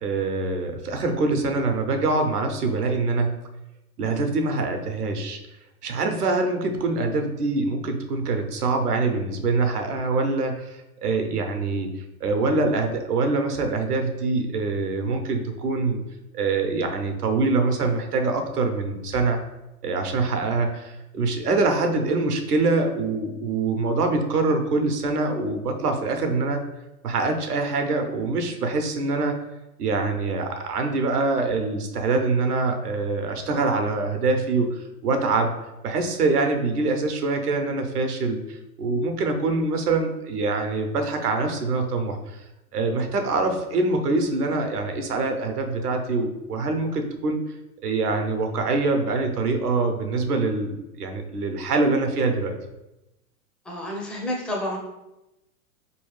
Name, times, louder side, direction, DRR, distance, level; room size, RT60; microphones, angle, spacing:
voice 1, 0.0-3.3 4.0-5.4 5.8-11.9 12.2-16.0 16.3-19.4 19.8-26.6 27.0-29.4 29.8-35.5 35.8-42.4 42.7-47.4 47.8-52.5, right 3 dB, 85° right, 5 dB, 0.8 m, -24 dB
voice 2, 53.7-54.8, left 1 dB, ahead, -3 dB, 0.4 m, -29 dB
4.5 x 3.1 x 3.1 m, 0.96 s
hypercardioid pair, 105°, 45 cm